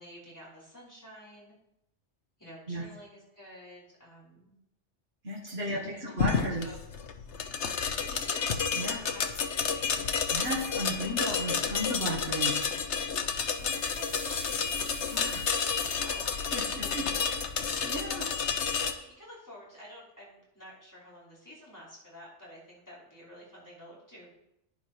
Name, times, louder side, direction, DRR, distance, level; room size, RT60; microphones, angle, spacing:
voice 1, 0.0-1.6 2.4-4.6 5.6-6.0 6.3-6.8 8.0-10.2 13.4-18.0 18.7-24.3, equal, 15° left, -7 dB, 4.9 m, -50 dB
voice 2, 5.2-6.7 8.7-9.0 10.3-12.7 15.1-15.4 16.5-17.0 17.8-18.3, right 1 dB, 60° right, -4 dB, 2.2 m, -34 dB
sound 1, 6.2-18.9, left 6 dB, 75° left, 1.2 m, -30 dB
sound 2, 13.2-18.0, right 1 dB, 45° right, 3.0 m, -47 dB
11.0 x 10.0 x 4.6 m, 0.82 s
omnidirectional pair, 1.2 m